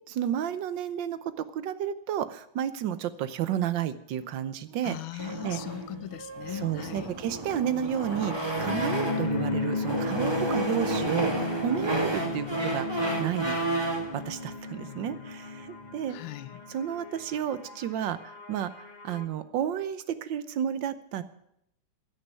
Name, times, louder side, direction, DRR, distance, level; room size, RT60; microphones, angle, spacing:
voice 1, 0.1-5.6 6.5-13.6 14.1-16.2 16.7-21.2, right 10 dB, 70° right, 13 dB, 1.4 m, -32 dB
voice 2, 4.8-7.1 16.1-16.6, left 13 dB, 90° left, 15 dB, 1.5 m, -39 dB
sound 1, 5.2-9.4 9.8-14.1, right 2 dB, 15° right, 2.1 m, -31 dB
sound 2, 8.6-19.3, left 3 dB, 75° left, 0.4 m, -35 dB
15.0 x 6.6 x 9.1 m, 0.77 s
omnidirectional pair, 2.2 m